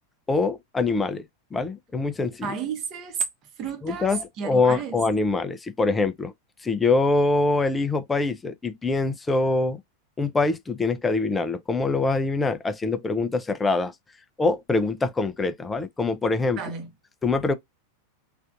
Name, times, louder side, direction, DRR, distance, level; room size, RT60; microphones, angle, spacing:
voice 1, 0.3-1.2 1.5-2.5 3.8-6.3 6.6-9.8 10.2-13.9 14.4-16.6 17.2-17.5, left 3 dB, 15° left, 0.5 m, -24 dB
voice 2, 2.4-3.2 3.6-5.0 16.6-16.9, right 6 dB, 35° right, 1.0 m, -32 dB
3.3 x 2.5 x 2.4 m
figure-of-eight pair, 90°, 0 cm